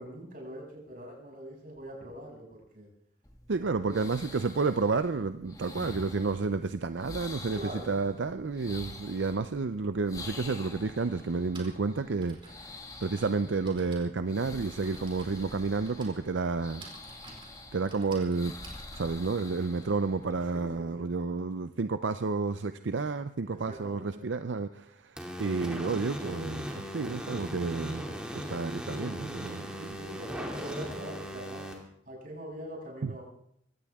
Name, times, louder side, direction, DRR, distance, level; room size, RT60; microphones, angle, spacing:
voice 1, 0.0-2.9 3.6-4.0 7.5-8.0 20.5-21.1 23.5-24.2 29.7-31.7 32.1-33.2, right 1 dB, 50° right, -1 dB, 7.1 m, -43 dB
sound 1, 3.2-20.8, left 2 dB, 20° left, 1.8 m, -47 dB
voice 2, 3.5-7.6 7.9-16.8 17.7-18.5 18.9-28.0 28.3-29.7 33.0-33.1, right 4 dB, 80° right, 10 dB, 0.6 m, -31 dB
Typing, 11.5-20.4, right 3 dB, 30° right, 4.3 m, -53 dB
sound 2, 25.2-31.7, equal, 5° right, 2.6 m, -38 dB
23.5 x 17.0 x 3.6 m, 0.70 s
head